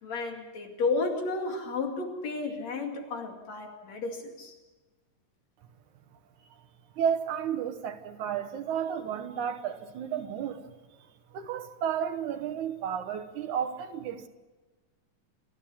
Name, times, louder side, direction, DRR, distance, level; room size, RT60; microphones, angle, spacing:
voice 1, 0.0-4.5, left 3 dB, 60° left, 3 dB, 3.5 m, -32 dB
voice 2, 7.0-10.6 11.3-14.3, right 8 dB, 75° right, 8 dB, 2.5 m, -32 dB
29.0 x 13.5 x 7.1 m, 1.2 s
omnidirectional pair, 3.6 m